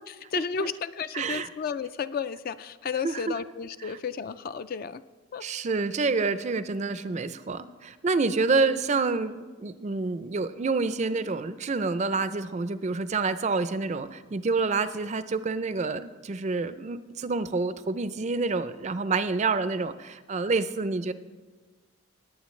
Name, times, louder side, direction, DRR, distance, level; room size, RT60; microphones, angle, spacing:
voice 1, 0.1-5.0 5.3-5.4, left 6 dB, 45° left, 13 dB, 0.3 m, -33 dB
voice 2, 1.1-1.5 3.0-3.4 3.8-3.9 5.4-21.1, right 4 dB, 35° right, 13 dB, 0.4 m, -28 dB
19.5 x 8.8 x 3.2 m, 1.4 s
head